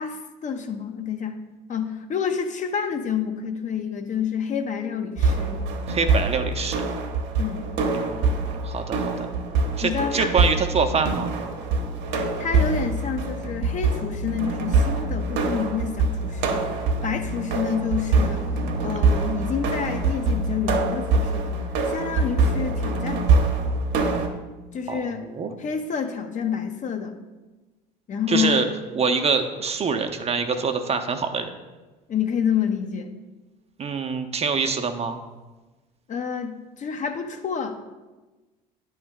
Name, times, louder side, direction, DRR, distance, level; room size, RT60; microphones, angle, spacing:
voice 1, 0.0-1.4 1.7-5.7 7.4-7.7 9.8-10.3 12.4-16.6 17.0-18.5 18.8-21.6 21.9-23.3 24.7-25.3 25.6-27.1 28.1-28.6 32.1-33.1 36.1-37.8, left 7 dB, 35° left, 6 dB, 0.6 m, -28 dB
sound 1, 5.2-24.3, right 3 dB, 60° right, 0.8 m, -24 dB
voice 2, 5.9-6.8 7.9-9.3 9.8-11.3 24.9-25.5 28.3-28.7 28.9-31.5 33.8-35.2, right 5 dB, 30° right, 6 dB, 0.6 m, -25 dB
9.4 x 3.1 x 3.6 m, 1.2 s
hypercardioid pair, 60°, 21 cm